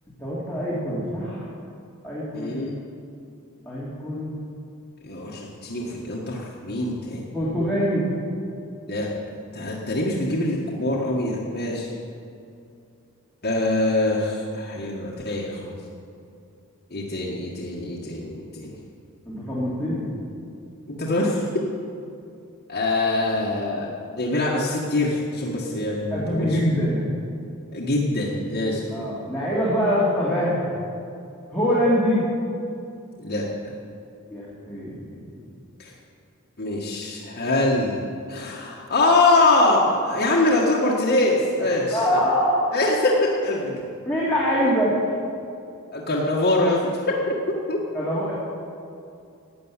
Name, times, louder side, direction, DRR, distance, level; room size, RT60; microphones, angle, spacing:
voice 1, 0.2-1.5 2.0-2.5 3.6-4.4 7.3-8.0 8.3-8.5 19.2-20.1 26.1-27.1 28.9-30.7 31.5-32.2 34.3-35.3 41.6-42.8 44.1-44.9 47.9-48.3, equal, 5° left, -9 dB, 2.8 m, -24 dB
voice 2, 2.3-2.8 5.0-7.3 8.9-9.1 9.5-11.9 13.4-15.8 16.9-18.8 20.9-21.4 22.7-23.9 24.2-26.6 27.7-29.0 33.2-33.7 35.8-35.9 36.6-38.0 38.3-42.2 42.7-43.8 45.9-46.9 47.3-47.8, left 2 dB, 45° left, -4 dB, 1.7 m, -24 dB
13.5 x 8.6 x 9.9 m, 2.5 s
head